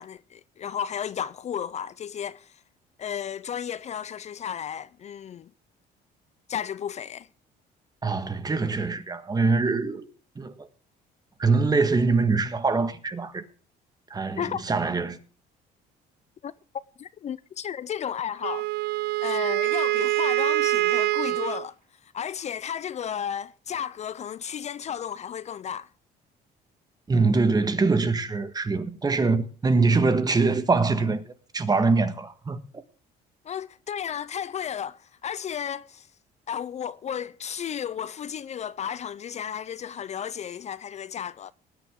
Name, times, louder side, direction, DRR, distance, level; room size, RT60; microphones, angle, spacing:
voice 1, 0.0-2.6 3.0-5.5 6.5-7.3 14.4-14.6 16.4-16.5 17.0-18.7 19.2-21.8 22.0-25.9 33.4-36.1 36.5-41.5, left 8 dB, 40° left, 0.5 m, -33 dB
voice 2, 8.0-10.1 10.3-10.7 11.4-13.4 14.1-15.2 27.1-31.2 31.5-32.8, right 4 dB, 25° right, 1.5 m, -23 dB
Wind instrument woodwind instrument, 18.4-21.7, right 18 dB, 70° right, 0.6 m, -25 dB
19.5 x 9.8 x 3.7 m
cardioid pair, 110°, 17 cm